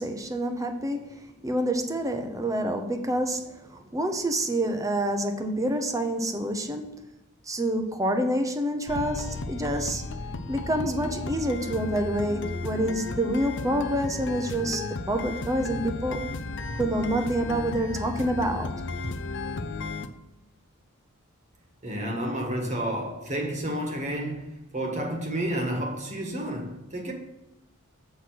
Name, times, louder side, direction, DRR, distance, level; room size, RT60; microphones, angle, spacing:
voice 1, 0.0-7.0 7.5-10.0 10.5-16.2 16.8-18.7, right 1 dB, 15° right, 0.8 m, -27 dB
sound 1, 8.9-20.1, left 3 dB, 55° left, 0.6 m, -34 dB
voice 2, 21.8-27.1, right 1 dB, 35° right, 1.5 m, -30 dB
7.7 x 4.7 x 6.0 m
head